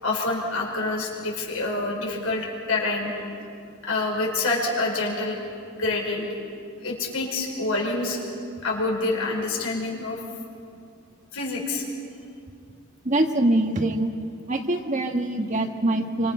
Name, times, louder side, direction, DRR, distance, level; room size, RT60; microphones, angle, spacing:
voice 1, 0.0-3.1 3.8-5.4 5.7-6.3 6.8-8.2 8.6-10.2 11.3-11.8, left 2 dB, 75° left, -1 dB, 5.2 m, -27 dB
voice 2, 13.0-14.1 14.5-16.3, right 1 dB, 35° right, 4 dB, 1.5 m, -24 dB
27.0 x 25.5 x 5.6 m, 2.4 s
head